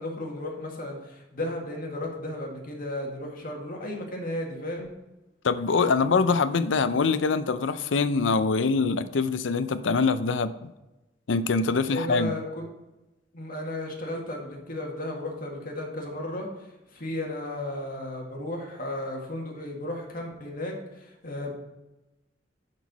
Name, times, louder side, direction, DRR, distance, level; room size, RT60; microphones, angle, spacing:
voice 1, 0.0-4.9 11.9-12.6 13.3-16.5 16.9-21.5, left 1 dB, 50° left, 0 dB, 1.9 m, -34 dB
voice 2, 5.4-10.7 11.3-12.4, left 4 dB, 90° left, 13 dB, 0.5 m, -24 dB
10.5 x 4.5 x 4.1 m, 1.0 s
head